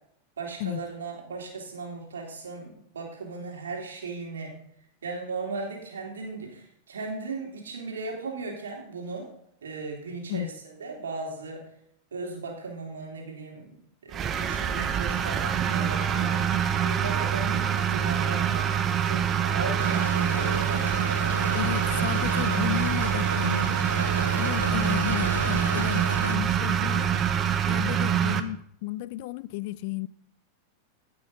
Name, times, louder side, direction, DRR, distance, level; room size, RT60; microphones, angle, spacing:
voice 1, 0.4-4.6 5.0-9.3 9.6-11.6 12.1-16.4 16.8-18.7 19.0-21.0 27.9-28.2, right 3 dB, 65° right, 3.1 m, -37 dB
sound 1, 14.1-28.4, right 9 dB, 25° right, 0.8 m, -25 dB
Wind instrument woodwind instrument, 14.2-22.3, left 5 dB, 15° left, 1.2 m, -45 dB
sound 2, 19.8-26.4, right 2 dB, 85° right, 1.1 m, -33 dB
voice 2, 21.5-23.8 24.4-27.3 27.7-30.1, left 15 dB, 50° left, 0.4 m, -33 dB
16.0 x 6.9 x 3.9 m
figure-of-eight pair, 90°, 0 cm